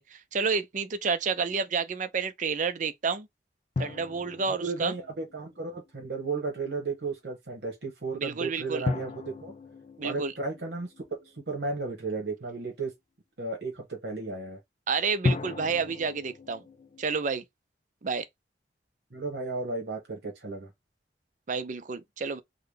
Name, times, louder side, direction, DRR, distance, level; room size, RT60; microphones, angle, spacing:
voice 1, 0.0-3.3 3.8-4.9 8.1-8.8 10.0-10.3 14.9-16.6 17.0-17.4 18.0-18.3 21.5-22.4, right 5 dB, 45° right, 0.5 m, -30 dB
sound 1, 3.8-6.0 8.9-11.8 15.2-17.1, left 3 dB, 35° left, 0.4 m, -35 dB
voice 2, 4.6-9.1 9.4-9.5 10.0-10.9 11.5-12.9 13.4-14.6 19.1-20.7, right 3 dB, 65° right, 1.1 m, -34 dB
3.8 x 2.2 x 3.3 m
head